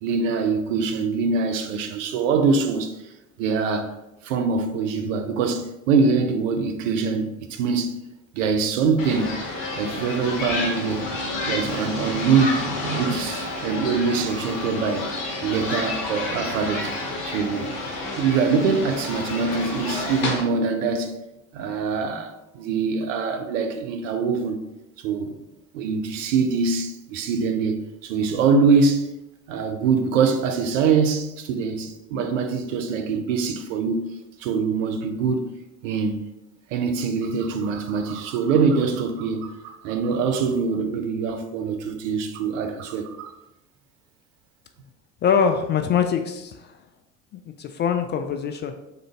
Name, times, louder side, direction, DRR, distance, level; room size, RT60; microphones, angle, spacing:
voice 1, 0.0-2.9 3.4-3.9 4.2-8.0 8.3-9.4 9.8-11.0 11.5-12.6 13.0-15.1 15.4-16.9 17.2-17.7 18.2-21.2 21.5-24.6 25.0-25.4 25.7-29.1 29.5-34.1 34.4-35.5 35.8-36.2 36.7-43.3, right 5 dB, 65° right, 0.7 m, -23 dB
sound 1, 9.0-20.4, left 2 dB, 60° left, 1.3 m, -30 dB
voice 2, 45.2-46.8 47.3-48.8, left 7 dB, 30° left, 0.3 m, -23 dB
3.8 x 2.7 x 4.8 m
figure-of-eight pair, 60°, 41 cm